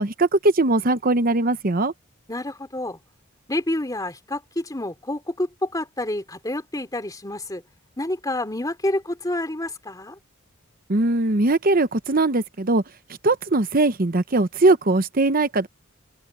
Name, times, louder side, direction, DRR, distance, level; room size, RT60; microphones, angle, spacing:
voice 1, 0.0-1.9 10.9-12.8 13.2-15.7, right 2 dB, 40° right, 0.9 m, -20 dB
voice 2, 2.3-3.0 3.5-7.6 8.0-10.2, left 1 dB, 15° left, 2.9 m, -28 dB
open air
head